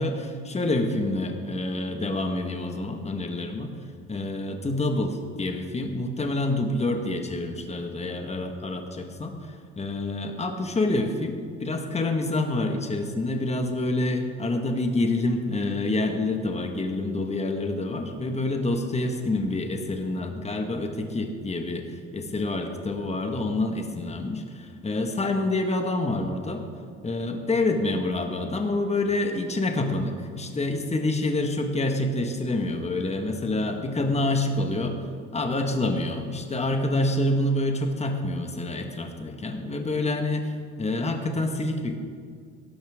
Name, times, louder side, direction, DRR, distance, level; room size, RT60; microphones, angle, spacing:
voice 1, 0.0-3.7 4.1-9.3 9.8-11.3 11.6-26.6 27.0-35.0 35.3-41.9, left 2 dB, 20° left, 4 dB, 1.6 m, -27 dB
17.5 x 12.0 x 3.7 m, 2.1 s
supercardioid pair, 90°, 30 cm